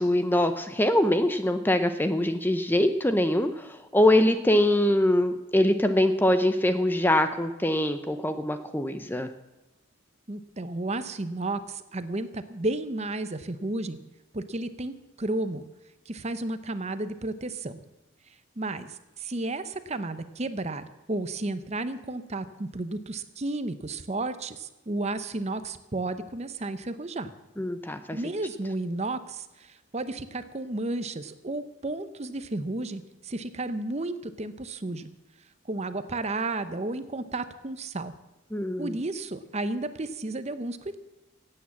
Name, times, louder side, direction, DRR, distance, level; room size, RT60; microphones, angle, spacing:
voice 1, 0.0-9.3 27.6-28.2 38.5-38.9, left 1 dB, 10° left, 9 dB, 0.6 m, -23 dB
voice 2, 10.3-14.0 14.3-15.6 16.1-17.8 18.6-27.3 28.1-35.1 35.7-38.1 38.8-41.0, right 2 dB, 30° right, 11 dB, 0.7 m, -32 dB
16.5 x 8.8 x 7.3 m, 1.1 s
head